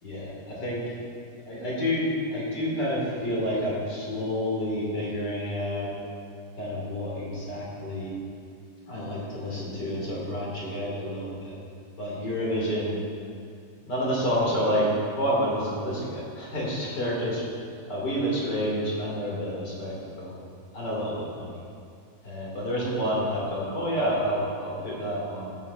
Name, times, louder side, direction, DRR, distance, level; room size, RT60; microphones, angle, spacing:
voice 1, 0.0-0.8 1.5-5.9 6.6-8.1 8.9-11.6 12.0-13.0 13.8-17.4 17.9-20.3 20.7-21.6 22.2-25.6, equal, 75° left, -5 dB, 3.7 m, -29 dB
13.5 x 8.9 x 4.3 m, 2.3 s
omnidirectional pair, 1.8 m